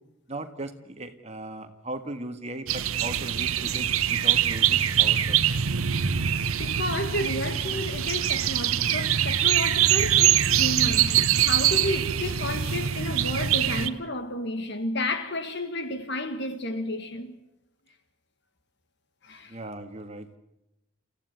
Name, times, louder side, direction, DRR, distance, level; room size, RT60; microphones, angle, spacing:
voice 1, 0.3-5.4 19.5-20.4, right 1 dB, 30° right, 1.7 m, -38 dB
sound 1, 2.7-13.9, right 10 dB, 85° right, 0.9 m, -23 dB
voice 2, 6.2-17.4 19.2-19.6, left 1 dB, 55° left, 1.7 m, -32 dB
28.5 x 15.0 x 9.5 m
head